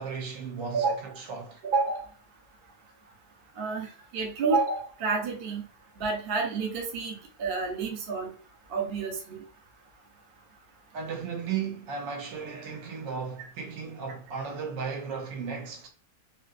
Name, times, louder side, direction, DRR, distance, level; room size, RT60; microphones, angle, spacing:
voice 1, 0.0-1.6 10.9-15.9, right 6 dB, 80° right, 1.4 m, -35 dB
voice 2, 1.6-2.0 3.6-5.6 6.0-8.3 8.7-9.4, right 4 dB, 55° right, 0.6 m, -29 dB
3.0 x 2.8 x 2.4 m
omnidirectional pair, 2.0 m